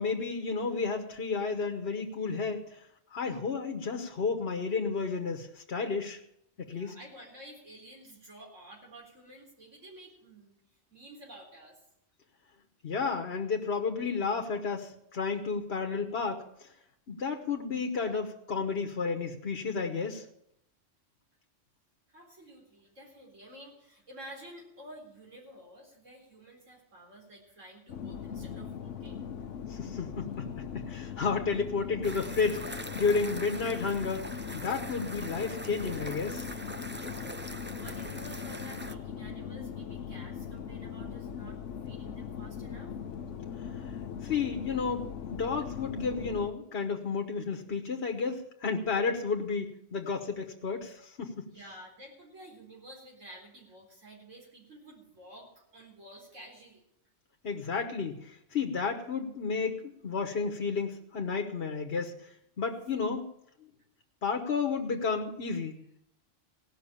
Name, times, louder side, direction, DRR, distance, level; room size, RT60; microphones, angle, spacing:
voice 1, 0.0-2.8 3.1-6.2 6.6-6.9 12.8-16.4 17.1-20.2 29.7-34.3 34.5-36.4 43.8-43.9 44.2-51.5 57.4-63.3 64.2-65.8, left 5 dB, 55° left, 3 dB, 1.4 m, -32 dB
voice 2, 6.6-10.5 10.9-11.8 22.1-29.2 36.9-42.9 51.4-56.8, right 1 dB, 90° right, -1 dB, 4.5 m, -51 dB
sound 1, 27.9-46.5, left 7 dB, 75° left, 1.2 m, -40 dB
sound 2, 32.0-38.9, right 1 dB, 15° right, 0.5 m, -43 dB
17.0 x 6.2 x 9.9 m, 0.76 s
omnidirectional pair, 1.3 m